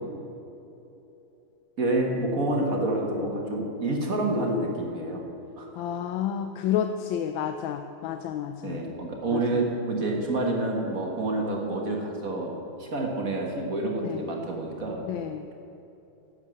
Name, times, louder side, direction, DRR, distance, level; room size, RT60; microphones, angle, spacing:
voice 1, 1.8-5.2 5.6-5.9 8.6-15.0, right 2 dB, 45° right, 0 dB, 1.8 m, -28 dB
voice 2, 5.8-8.8 9.3-9.7 14.0-14.2 15.1-15.4, left 9 dB, 75° left, 7 dB, 1.3 m, -30 dB
11.5 x 7.5 x 7.9 m, 3.0 s
omnidirectional pair, 2.2 m